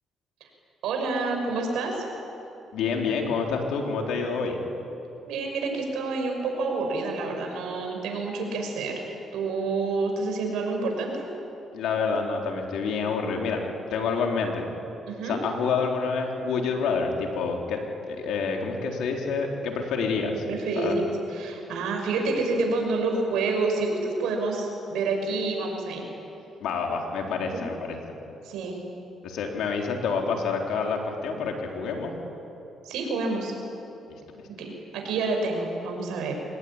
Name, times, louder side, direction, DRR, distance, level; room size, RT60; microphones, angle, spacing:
voice 1, 0.8-2.1 5.2-9.0 9.3-11.2 15.1-15.4 20.5-21.0 21.3-26.1 27.5-27.6 28.4-28.8 32.8-33.5 34.6-36.4, right 3 dB, 85° right, 2 dB, 6.2 m, -28 dB
voice 2, 2.7-4.6 11.7-13.6 13.9-14.7 15.2-17.8 18.1-20.4 20.8-20.9 26.6-28.0 29.2-32.1 34.3-34.4, left 5 dB, 80° left, 1 dB, 4.1 m, -28 dB
25.5 x 21.0 x 10.0 m, 2.9 s
cardioid pair, 90°, 0 cm